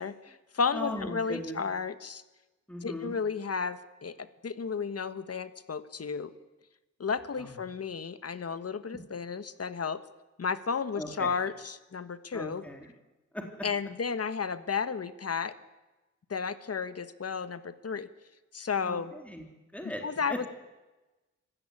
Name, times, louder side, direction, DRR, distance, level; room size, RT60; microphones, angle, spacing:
voice 1, 0.0-2.2 2.8-6.3 7.0-10.0 10.4-12.6 13.6-15.5 16.3-18.1 18.5-19.1 20.0-20.3, left 5 dB, 55° left, 12 dB, 1.4 m, -33 dB
voice 2, 0.7-1.6 2.7-3.1 7.4-7.6 11.0-11.3 12.3-12.9 13.3-13.7 18.8-19.4 19.7-20.0 20.3-20.5, equal, 5° left, 2 dB, 3.9 m, -38 dB
25.5 x 16.0 x 9.8 m, 1.1 s
wide cardioid pair, 85°, 29 cm